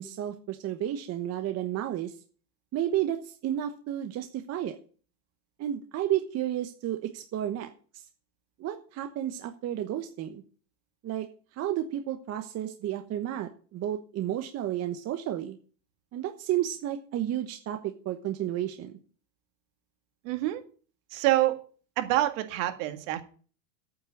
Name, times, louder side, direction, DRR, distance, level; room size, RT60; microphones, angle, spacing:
voice 1, 0.0-2.1 2.7-4.8 5.6-7.7 8.6-10.4 11.0-11.3 11.6-15.6 16.1-17.8 18.0-19.0, right 12 dB, 30° right, 6 dB, 1.1 m, -32 dB
voice 2, 20.2-20.6 21.1-21.6 22.0-23.2, right 15 dB, 55° right, 8 dB, 2.0 m, -26 dB
9.0 x 7.6 x 8.4 m, 0.41 s
supercardioid pair, 125°, 49 cm